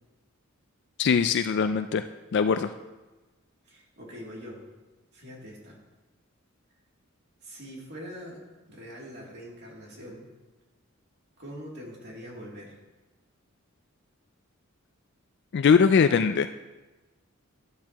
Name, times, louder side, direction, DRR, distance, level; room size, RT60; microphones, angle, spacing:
voice 1, 1.0-2.0 2.3-2.7 15.5-16.5, left 6 dB, 55° left, 9 dB, 0.4 m, -21 dB
voice 2, 3.7-4.6 5.1-5.8 7.4-8.4 8.7-10.3 11.4-12.8, equal, 55° right, -3 dB, 2.8 m, -43 dB
12.0 x 11.0 x 2.9 m, 1.2 s
head